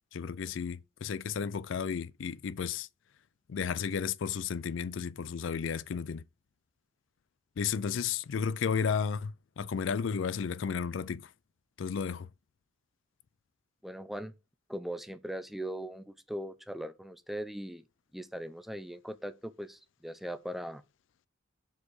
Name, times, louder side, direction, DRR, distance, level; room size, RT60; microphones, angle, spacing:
voice 1, 0.1-2.9 3.5-6.2 7.6-11.3 11.8-12.3, left 6 dB, 70° left, 0.4 m, -33 dB
voice 2, 13.8-14.3 14.7-17.8 18.1-20.8, equal, ahead, 0.5 m, -39 dB
7.2 x 4.4 x 4.7 m
head